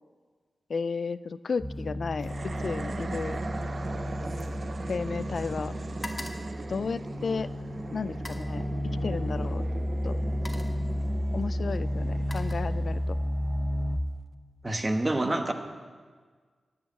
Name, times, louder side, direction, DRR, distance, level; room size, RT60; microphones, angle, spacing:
voice 1, 0.7-3.4 4.9-5.7 6.7-7.5 7.9-9.6 10.0-10.2 11.3-13.2, left 5 dB, 65° left, 16 dB, 0.4 m, -33 dB
sound 1, 1.5-1.9 2.2-5.3 5.6-7.5 8.1-8.6 9.6-9.8 10.2-10.9 11.7-13.1 13.5-13.9, left 1 dB, 20° left, 1.4 m, -46 dB
sound 2, 1.6-14.0, equal, 10° right, 1.0 m, -32 dB
sound 3, 2.2-13.6, right 3 dB, 50° right, 0.6 m, -39 dB
voice 2, 14.6-15.5, right 1 dB, 25° right, 6 dB, 1.3 m, -27 dB
11.0 x 8.6 x 7.8 m, 1.5 s
cardioid pair, 70°, 0 cm